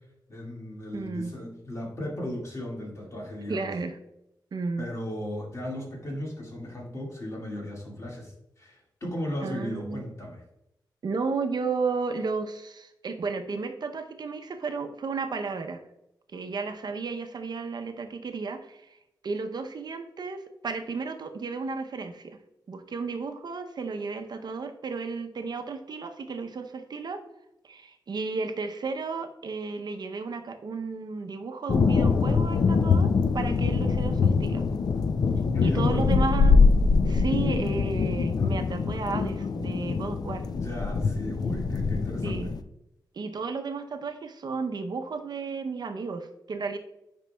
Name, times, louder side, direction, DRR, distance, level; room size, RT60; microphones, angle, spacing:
voice 1, 0.3-3.7 4.8-10.4 35.5-36.1 40.5-42.5, left 1 dB, 40° left, -1 dB, 1.9 m, -36 dB
voice 2, 0.9-1.3 3.5-4.0 4.5-4.9 9.4-10.1 11.0-15.8 16.3-19.0 19.2-22.4 22.7-27.2 27.6-34.6 35.6-36.6 37.1-40.5 42.2-42.5 43.1-46.8, right 4 dB, 65° right, 6 dB, 0.6 m, -33 dB
sound 1, 31.7-42.6, left 4 dB, 55° left, 0.4 m, -23 dB
9.0 x 5.2 x 2.3 m, 0.85 s
wide cardioid pair, 100°, 8 cm